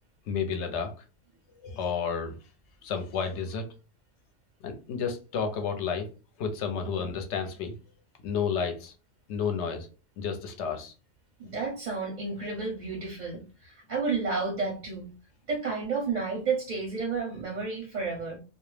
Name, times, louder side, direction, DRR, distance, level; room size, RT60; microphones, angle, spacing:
voice 1, 0.3-0.9 1.6-2.4 2.8-3.7 4.6-6.1 6.4-7.7 8.2-8.9 9.3-9.9 10.2-10.9, left 6 dB, 70° left, 0.8 m, -31 dB
voice 2, 11.4-15.1 15.5-18.4, right 4 dB, 50° right, 0.5 m, -31 dB
2.3 x 2.0 x 3.1 m
omnidirectional pair, 1.3 m